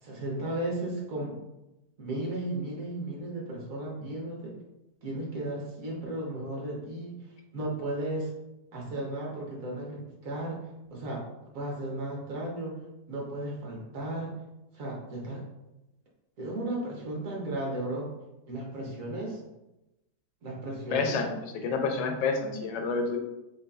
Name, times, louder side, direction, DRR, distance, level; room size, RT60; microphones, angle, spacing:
voice 1, 0.0-1.4 2.0-4.6 5.0-7.3 7.5-8.3 8.7-11.2 11.5-12.8 13.1-14.4 14.7-15.4 16.4-18.1 18.5-19.4 20.4-21.1, right 1 dB, 60° right, -2 dB, 1.1 m, -35 dB
voice 2, 20.9-23.2, left 4 dB, 85° left, 4 dB, 1.2 m, -29 dB
3.9 x 3.4 x 2.3 m, 0.95 s
omnidirectional pair, 1.8 m